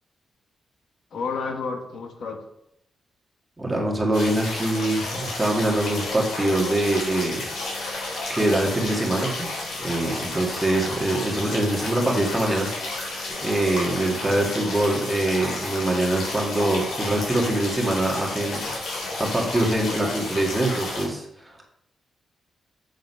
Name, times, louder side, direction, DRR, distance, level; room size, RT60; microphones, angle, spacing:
voice 1, 1.1-2.4 6.2-6.3 7.5-7.6 9.8-9.9 14.1-14.4 15.5-15.7 18.7-19.2 19.8-20.1, left 4 dB, 60° left, 3 dB, 1.4 m, -33 dB
voice 2, 3.6-7.4 8.3-9.5 9.8-13.1 13.4-18.7 19.2-21.3, right 1 dB, 10° right, -1 dB, 2.0 m, -24 dB
sound 1, 4.1-21.1, left 2 dB, 80° left, 3.8 m, -31 dB
8.1 x 6.6 x 5.6 m, 0.79 s
wide cardioid pair, 165°, 0 cm